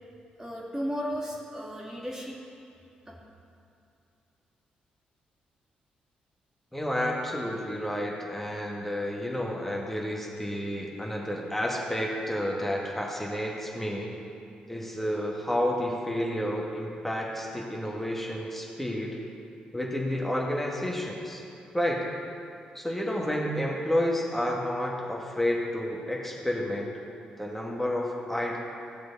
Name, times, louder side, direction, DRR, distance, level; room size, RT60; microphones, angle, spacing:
voice 1, 0.4-2.4 3.1-3.2, equal, 15° right, -3 dB, 1.9 m, -34 dB
voice 2, 6.7-14.1 14.7-19.2 19.7-21.4 21.7-22.0 22.8-26.9 27.4-28.6, left 1 dB, 5° left, -2 dB, 2.0 m, -30 dB
15.0 x 7.5 x 4.1 m, 2.6 s
hypercardioid pair, 40°, 4 cm